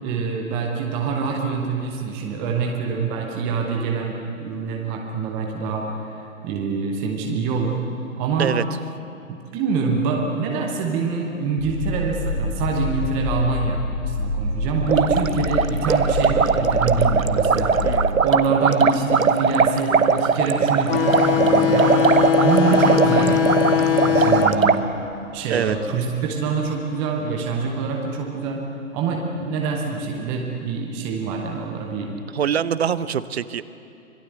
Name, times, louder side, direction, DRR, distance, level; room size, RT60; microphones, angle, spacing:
voice 1, 0.0-6.1 6.4-7.8 8.2-8.5 9.3-13.8 14.0-17.7 18.2-22.0 22.4-24.9 25.3-28.7 28.9-32.1, right 5 dB, 5° right, 1 dB, 0.5 m, -25 dB
sound 1, 11.6-18.1, left 1 dB, 25° left, 2.7 m, -27 dB
sound 2, 14.8-24.8, right 5 dB, 80° right, 1.2 m, -20 dB
voice 2, 17.8-18.2 22.7-23.0 25.5-25.8 32.3-33.6, right 8 dB, 50° right, 15 dB, 0.9 m, -24 dB
sound 3, 20.9-26.0, left 8 dB, 45° left, 1.6 m, -21 dB
25.5 x 19.5 x 8.0 m, 2.7 s
figure-of-eight pair, 130°, 40 cm